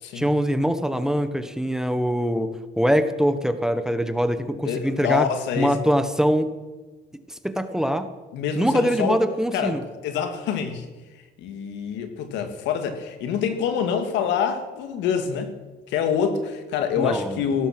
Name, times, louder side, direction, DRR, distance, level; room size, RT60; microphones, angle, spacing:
voice 1, 0.1-5.3 5.6-6.5 7.3-8.1 8.5-9.8 17.0-17.4, equal, 5° right, 10 dB, 1.3 m, -23 dB
voice 2, 4.6-5.8 8.3-9.2 9.5-10.9 11.4-15.5 15.9-17.7, left 7 dB, 80° left, 7 dB, 2.2 m, -26 dB
17.0 x 12.5 x 6.1 m, 1.2 s
cardioid pair, 100°, 18 cm